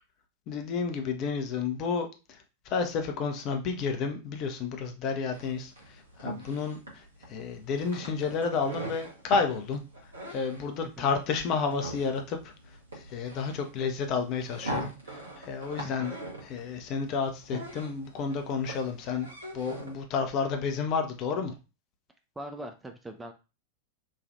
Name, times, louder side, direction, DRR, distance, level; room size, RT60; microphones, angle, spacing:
voice 1, 0.5-2.4 2.6-12.5 12.9-16.2 16.4-19.3 19.5-21.5, left 5 dB, 40° left, 5 dB, 0.6 m, -31 dB
sound 1, 5.3-20.0, right 1 dB, 70° right, 1.0 m, -41 dB
voice 2, 22.4-23.3, right 1 dB, 10° right, 5 dB, 0.4 m, -41 dB
3.1 x 2.3 x 2.6 m, 0.30 s
figure-of-eight pair, 90°, 0 cm